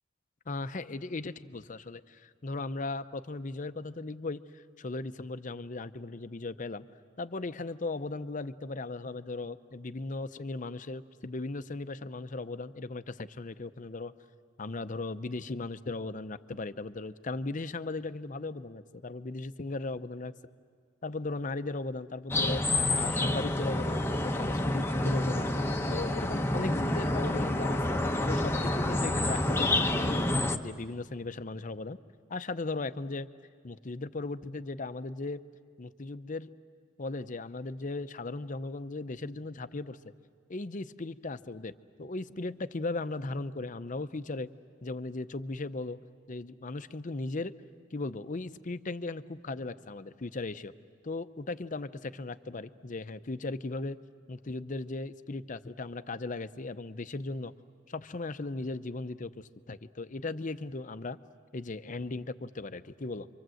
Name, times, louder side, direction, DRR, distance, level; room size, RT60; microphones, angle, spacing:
voice 1, 0.5-6.8 7.2-14.1 14.6-20.3 21.0-22.6 22.9-27.8 28.3-30.2 30.5-32.0 32.3-33.3 33.6-35.4 35.8-36.5 37.0-40.0 40.5-41.7 42.0-44.5 44.8-46.0 46.3-47.5 47.9-50.7 51.0-54.0 54.3-57.5 57.9-61.2 61.5-63.3, left 3 dB, 45° left, 12 dB, 0.7 m, -37 dB
sound 1, 22.3-30.6, left 1 dB, 15° left, 0.8 m, -28 dB
29.5 x 24.5 x 7.8 m, 2.1 s
head